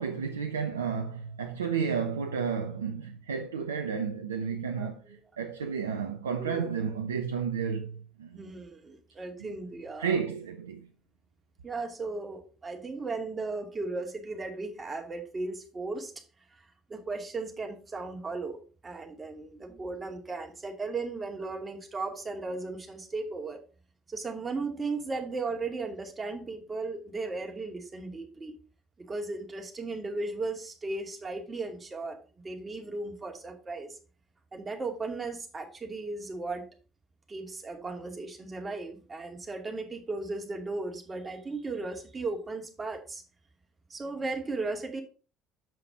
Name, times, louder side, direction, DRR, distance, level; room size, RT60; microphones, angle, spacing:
voice 1, 0.0-8.5 9.4-9.5 10.0-10.8, right 6 dB, 85° right, 0.6 m, -32 dB
voice 2, 4.8-5.1 6.4-6.7 8.3-10.2 11.6-16.2 16.5-16.6 16.9-18.6 18.8-23.6 24.1-28.5 29.0-32.2 32.4-34.0 34.5-36.7 37.3-43.2 43.9-45.0, right 3 dB, 25° right, 2.4 m, -36 dB
7.7 x 5.7 x 4.9 m
hypercardioid pair, 55°, 0 cm